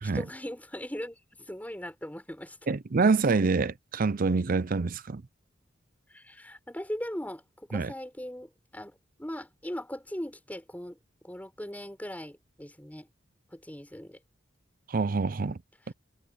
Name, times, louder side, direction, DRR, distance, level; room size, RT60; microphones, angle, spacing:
voice 1, 0.0-2.6 6.1-11.0 11.2-13.1 13.5-14.2, equal, 10° left, 6.6 m, -39 dB
voice 2, 2.7-5.2 7.7-7.9 14.9-15.6 15.9-16.0, right 4 dB, 50° right, 0.6 m, -26 dB
head